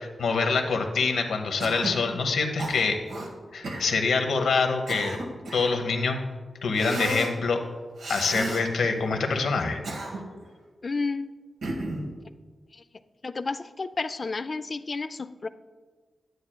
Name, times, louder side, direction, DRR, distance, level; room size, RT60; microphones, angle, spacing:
voice 1, 0.2-3.0 3.5-5.2 5.5-6.2 6.6-7.6 8.1-9.8, left 4 dB, 85° left, 4 dB, 0.8 m, -25 dB
Cough, 1.6-2.0 2.6-3.3 3.6-3.9 4.6-5.8 6.7-7.3 8.0-8.6 9.6-10.4 11.6-12.1, right 2 dB, 90° right, 1.3 m, -33 dB
voice 2, 10.8-11.3 12.7-12.8 13.2-15.5, left 3 dB, 50° left, 13 dB, 0.4 m, -31 dB
9.8 x 9.4 x 2.2 m, 1.4 s
cardioid pair, 45°, 0 cm